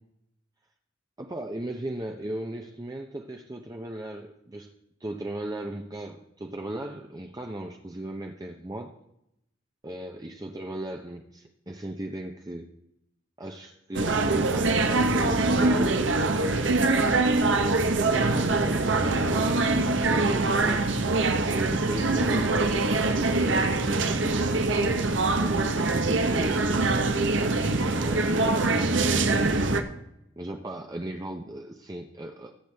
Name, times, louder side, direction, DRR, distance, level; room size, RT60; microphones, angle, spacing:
voice 1, 1.2-4.7 5.0-8.9 9.8-12.7 13.4-19.6 20.1-20.9 21.3-24.9 25.4-27.1 27.9-29.8 30.4-32.5, right 1 dB, 20° right, 3 dB, 0.7 m, -37 dB
sound 1, 13.9-29.8, right 3 dB, 65° right, 1.0 m, -24 dB
20.5 x 8.1 x 3.4 m, 0.81 s
head